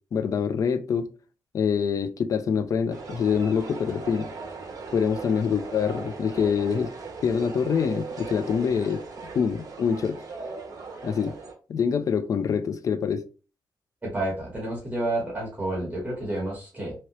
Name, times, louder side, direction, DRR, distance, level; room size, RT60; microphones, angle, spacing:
voice 1, 0.1-1.1 1.5-4.3 4.9-6.9 7.2-9.0 9.3-10.2 11.0-11.4 11.7-13.2, left 6 dB, 50° left, 0.3 m, -25 dB
sound 1, 2.9-11.5, right 4 dB, 50° right, 1.0 m, -38 dB
voice 2, 14.0-16.9, right 1 dB, 20° right, 1.0 m, -30 dB
3.1 x 2.8 x 2.9 m
wide cardioid pair, 160°, 7 cm